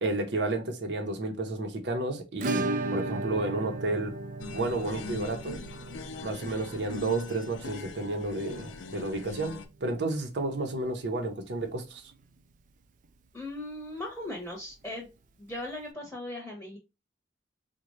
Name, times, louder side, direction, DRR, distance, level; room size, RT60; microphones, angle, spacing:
voice 1, 0.0-4.2 4.5-5.6 6.2-12.0, right 2 dB, 65° right, 0.7 m, -31 dB
Acoustic guitar / Strum, 2.4-11.0 11.3-11.4 11.7-11.8 12.1-12.2 14.3-14.4 15.5-15.6, right 2 dB, 45° right, 0.3 m, -37 dB
sound 1, 4.4-9.7, left 4 dB, 90° left, 0.5 m, -42 dB
voice 2, 13.3-15.1 15.4-16.8, left 1 dB, 5° left, 0.8 m, -38 dB
3.7 x 2.2 x 3.0 m
head